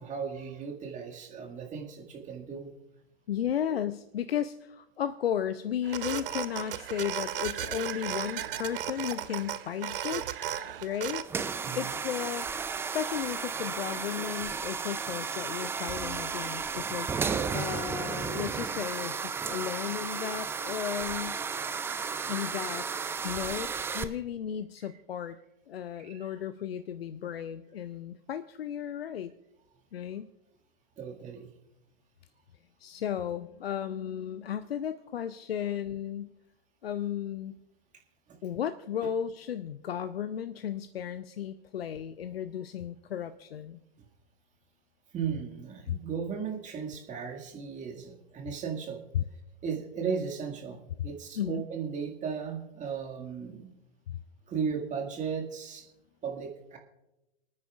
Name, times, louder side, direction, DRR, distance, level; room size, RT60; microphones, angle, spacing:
voice 1, 0.0-2.7 3.7-3.8 11.6-11.9 26.0-26.4 31.0-31.5 38.3-38.4 45.1-49.0 49.6-53.7 54.5-55.8 56.2-56.8, right 6 dB, 25° right, 1 dB, 2.0 m, -36 dB
voice 2, 3.3-10.3 10.8-11.3 11.8-12.5 12.9-21.4 22.3-22.9 23.2-25.4 25.7-29.3 29.9-30.3 32.8-36.3 36.8-37.6 38.4-43.8 45.9-46.0 49.1-49.2 51.4-51.6 54.1-54.2, left 9 dB, 80° left, 12 dB, 0.5 m, -34 dB
sound 1, 5.8-11.2, right 10 dB, 65° right, 0.8 m, -35 dB
sound 2, 11.2-24.0, right 5 dB, 10° right, 0.4 m, -33 dB
28.5 x 9.6 x 2.4 m, 0.96 s
figure-of-eight pair, 100°, 30 cm